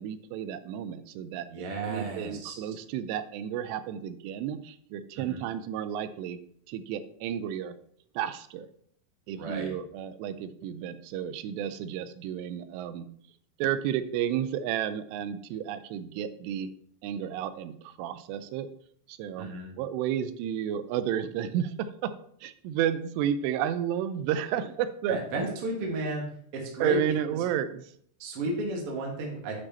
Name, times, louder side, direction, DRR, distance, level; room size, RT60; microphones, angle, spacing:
voice 1, 0.0-6.4 6.7-7.8 8.2-8.7 9.3-13.1 13.6-16.7 17.0-18.7 19.1-19.5 19.8-22.1 22.4-25.5 26.8-27.9, right 9 dB, 85° right, 12 dB, 2.6 m, -32 dB
voice 2, 1.5-2.7 5.1-5.4 9.4-9.7 19.4-19.7 25.1-26.3 26.5-27.0 28.2-29.6, right 2 dB, 55° right, 0 dB, 1.6 m, -33 dB
8.5 x 4.8 x 4.2 m, 0.64 s
omnidirectional pair, 5.0 m